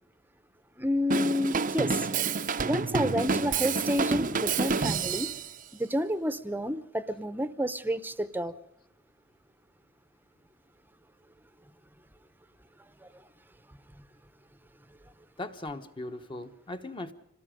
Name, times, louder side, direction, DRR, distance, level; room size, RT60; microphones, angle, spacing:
voice 1, 0.8-2.1 2.6-5.3 5.8-8.5 13.0-13.1, equal, 10° right, 13 dB, 0.8 m, -29 dB
Drum kit / Drum, 1.1-5.5, right 4 dB, 40° right, 0.7 m, -29 dB
voice 2, 15.4-17.1, left 2 dB, 25° left, 8 dB, 1.2 m, -38 dB
26.5 x 19.0 x 5.2 m, 0.80 s
head